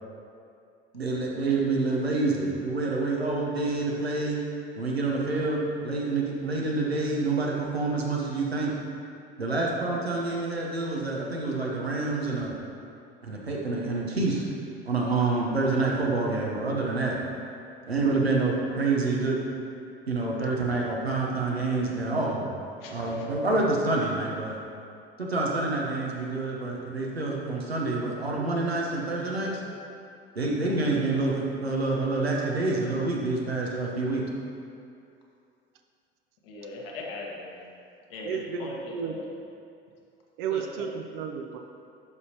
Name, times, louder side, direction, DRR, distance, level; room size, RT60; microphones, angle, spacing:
voice 1, 0.9-4.4 4.8-8.7 9.4-12.5 13.2-14.5 14.8-17.2 17.9-19.4 20.1-22.5 22.9-24.6 25.2-29.6 30.3-34.2, right 3 dB, 85° right, -2 dB, 1.0 m, -27 dB
voice 2, 22.8-23.3 36.4-37.6 38.1-39.3 40.5-40.9, left 2 dB, 70° left, -2 dB, 1.3 m, -39 dB
voice 3, 38.2-39.2 40.4-41.6, right 7 dB, 60° right, 4 dB, 0.7 m, -33 dB
11.0 x 5.4 x 2.9 m, 2.5 s
figure-of-eight pair, 65°, 30 cm